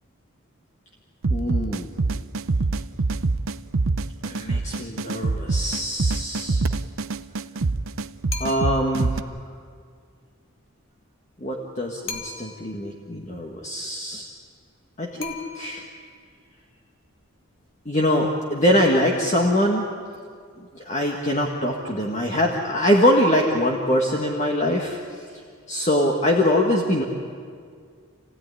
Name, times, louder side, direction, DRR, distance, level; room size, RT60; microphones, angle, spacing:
sound 1, 1.2-9.2, right 3 dB, 70° right, 0.7 m, -25 dB
voice 1, 1.3-1.9 4.2-6.7 8.4-9.2 11.4-14.3 15.0-15.8 17.9-19.9 20.6-25.2 25.7-27.0, left 1 dB, 35° left, 0 dB, 1.8 m, -23 dB
sound 2, 8.3-8.9 12.1-12.8 15.2-16.0, left 5 dB, 65° left, 2.5 m, -37 dB
28.5 x 17.0 x 9.8 m, 2.1 s
head